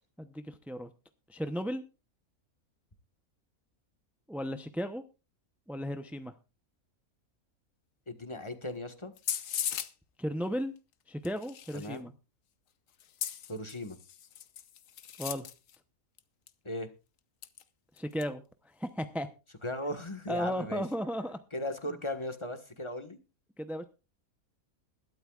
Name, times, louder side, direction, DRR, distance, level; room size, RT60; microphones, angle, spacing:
voice 1, 0.2-0.9 1.3-1.8 4.3-5.0 5.7-6.3 10.2-10.7 11.1-12.1 15.2-15.5 17.9-18.4 18.7-19.3 20.3-21.4 23.6-23.8, equal, ahead, 8 dB, 0.4 m, -35 dB
voice 2, 8.1-9.1 11.7-12.1 13.5-14.0 16.6-16.9 19.6-20.8 21.5-23.2, left 1 dB, 20° left, 7 dB, 1.4 m, -37 dB
sound 1, 9.2-9.9 11.2-12.0 13.0-15.8 16.2-16.3 16.5-16.6 17.4-17.6 18.0-18.2, left 9 dB, 70° left, 1.2 m, -38 dB
21.0 x 12.5 x 2.4 m, 0.31 s
omnidirectional pair, 1.5 m